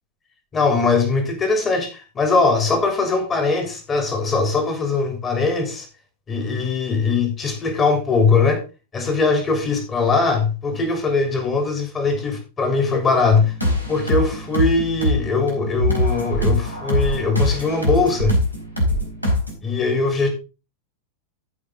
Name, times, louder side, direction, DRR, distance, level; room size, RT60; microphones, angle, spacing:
voice 1, 0.5-5.9 6.3-8.6 8.9-13.5 13.9-18.3 19.6-20.3, left 4 dB, 20° left, 5 dB, 3.3 m, -20 dB
sound 1, 13.4-19.5, left 1 dB, 85° left, 4.3 m, -22 dB
14.5 x 5.5 x 3.7 m, 0.31 s
figure-of-eight pair, 90°, 0 cm